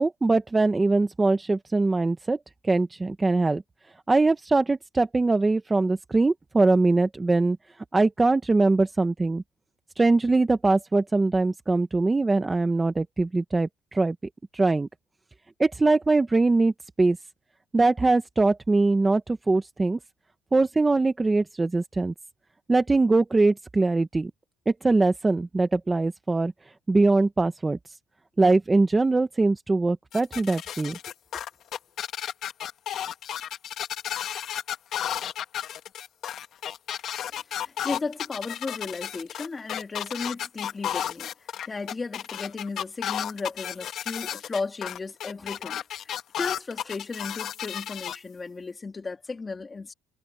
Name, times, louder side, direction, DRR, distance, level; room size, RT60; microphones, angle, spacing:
voice 1, 0.0-2.4 2.6-3.6 4.1-7.6 7.9-9.4 10.0-14.2 14.5-14.9 15.6-16.7 17.0-17.2 17.7-20.0 20.5-22.1 22.7-24.3 24.7-26.5 26.9-28.0 28.4-31.0, right 3 dB, 10° right, 0.6 m, -22 dB
sound 1, 30.1-48.2, left 10 dB, 40° left, 1.4 m, -33 dB
voice 2, 37.6-41.3 41.6-46.1 46.4-49.9, left 4 dB, 15° left, 2.4 m, -35 dB
cardioid pair, 175°, 0 cm